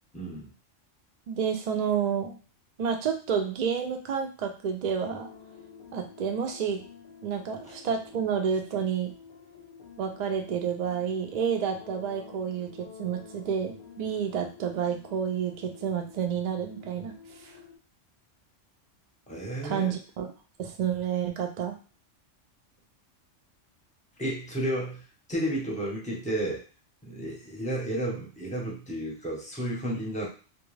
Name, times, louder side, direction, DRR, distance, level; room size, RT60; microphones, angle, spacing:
voice 1, 0.1-0.5 7.7-7.8 19.3-20.0 24.2-26.6 27.0-30.3, right 1 dB, 10° left, -3 dB, 0.6 m, -32 dB
voice 2, 1.3-2.4 2.8-5.3 5.9-6.8 7.2-9.1 10.0-17.1 17.4-17.5 19.6-20.3 20.6-21.8, right 7 dB, 75° right, 4 dB, 0.3 m, -30 dB
sound 1, 5.0-17.8, left 6 dB, 55° left, 0.7 m, -50 dB
2.3 x 2.2 x 3.1 m, 0.36 s
omnidirectional pair, 1.3 m